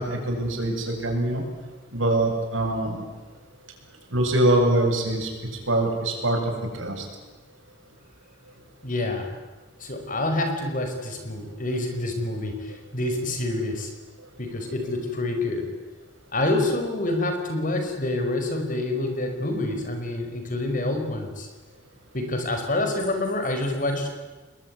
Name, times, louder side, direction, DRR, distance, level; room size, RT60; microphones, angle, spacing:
voice 1, 0.0-1.4 1.9-3.0 4.1-5.3 5.7-7.0, right 1 dB, 85° right, 2 dB, 7.5 m, -23 dB
voice 2, 8.8-9.3 9.8-13.9 14.4-15.7 16.3-21.5 22.1-24.1, left 2 dB, 45° left, 5 dB, 5.2 m, -27 dB
28.5 x 21.0 x 9.8 m, 1.3 s
head